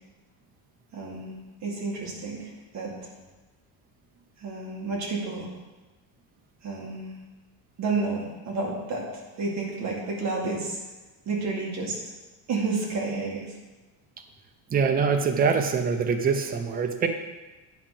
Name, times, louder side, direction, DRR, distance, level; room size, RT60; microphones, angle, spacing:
voice 1, 0.9-1.4 1.6-3.1 4.4-5.5 6.6-7.1 7.8-9.1 9.4-10.8 11.3-12.0 12.5-13.4, right 3 dB, 40° right, -2 dB, 2.1 m, -30 dB
voice 2, 14.7-17.1, right 5 dB, 20° right, 5 dB, 0.6 m, -24 dB
9.3 x 4.9 x 5.8 m, 1.2 s
cardioid pair, 180°, 42 cm